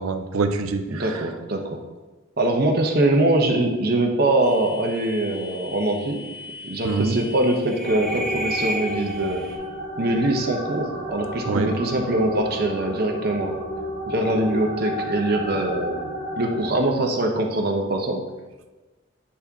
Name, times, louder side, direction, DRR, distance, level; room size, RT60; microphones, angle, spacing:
voice 1, 0.0-1.3 6.8-7.2 11.4-11.8, right 4 dB, 90° right, 8 dB, 0.5 m, -25 dB
voice 2, 0.9-1.8 2.4-6.2 6.6-9.4 10.0-13.5 14.1-16.0 16.4-18.2, right 1 dB, 50° right, 2 dB, 0.9 m, -23 dB
sound 1, 4.4-9.6, equal, 5° right, 1.5 m, -34 dB
sound 2, 7.8-16.8, equal, 20° left, 2.2 m, -31 dB
8.6 x 4.3 x 3.6 m, 1.2 s
head